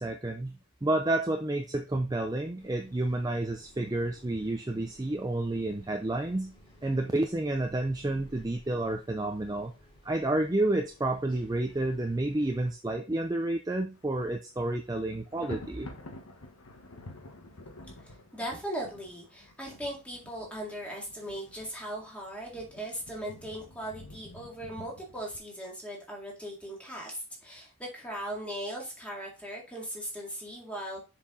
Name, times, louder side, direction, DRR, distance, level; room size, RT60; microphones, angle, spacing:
voice 1, 0.0-6.5 6.8-9.7 10.0-15.9, right 2 dB, 15° right, 4 dB, 0.5 m, -30 dB
sound 1, 2.6-12.7, equal, 20° left, 2.9 m, -57 dB
Thunder, 13.9-14.3 14.6-25.4, left 1 dB, 90° left, 1.2 m, -49 dB
voice 2, 18.0-31.0, right 1 dB, 5° left, -2 dB, 2.1 m, -39 dB
7.0 x 4.6 x 3.8 m, 0.29 s
head